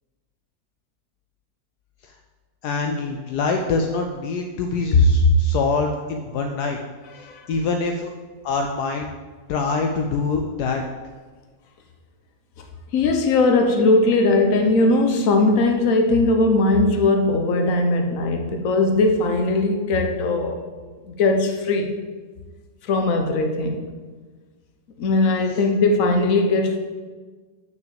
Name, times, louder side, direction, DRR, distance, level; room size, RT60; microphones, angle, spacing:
voice 1, 2.6-6.8 7.1-8.1 8.4-9.1 9.5-10.8, left 4 dB, 75° left, 4 dB, 1.1 m, -25 dB
voice 2, 12.9-20.6 21.1-21.9 22.8-23.8 25.0-26.8, left 2 dB, 55° left, 4 dB, 1.2 m, -19 dB
6.3 x 6.0 x 6.9 m, 1.4 s
omnidirectional pair, 1.9 m